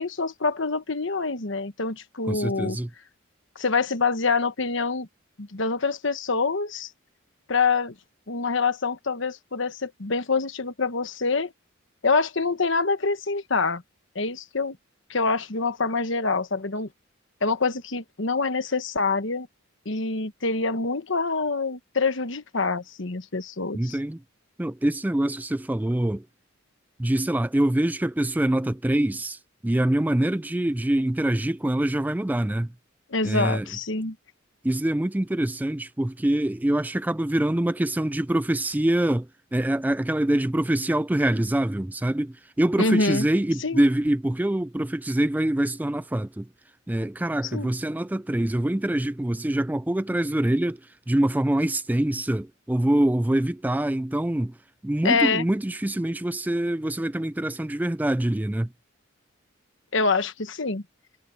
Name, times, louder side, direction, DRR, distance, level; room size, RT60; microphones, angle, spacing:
voice 1, 0.0-2.8 3.5-5.1 5.4-6.9 7.5-7.9 8.3-11.5 12.0-13.8 14.1-14.8 15.1-16.9 17.4-19.5 19.8-24.0 33.1-34.1 42.8-43.3 43.6-43.8 47.5-47.7 55.0-55.5 59.9-60.8, left 4 dB, 65° left, 1.2 m, -25 dB
voice 2, 2.3-2.9 23.7-24.2 24.6-26.3 27.0-32.7 33.2-33.7 34.6-46.5 46.9-50.8 51.1-54.6 54.8-58.7, right 1 dB, 10° right, 0.3 m, -25 dB
head